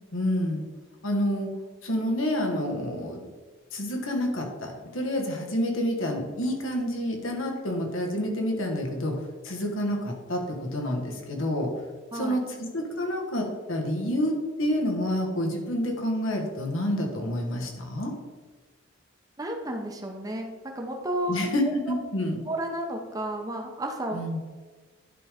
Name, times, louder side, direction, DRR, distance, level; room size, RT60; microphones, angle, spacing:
voice 1, 0.1-0.6 1.0-1.5 1.8-3.2 3.7-9.2 9.4-11.7 12.1-18.1 21.3-22.4 24.1-24.4, left 1 dB, 80° left, 1 dB, 1.6 m, -28 dB
voice 2, 19.4-21.9 22.5-24.2, right 1 dB, 20° right, 2 dB, 0.8 m, -32 dB
10.5 x 3.7 x 5.1 m, 1.4 s
head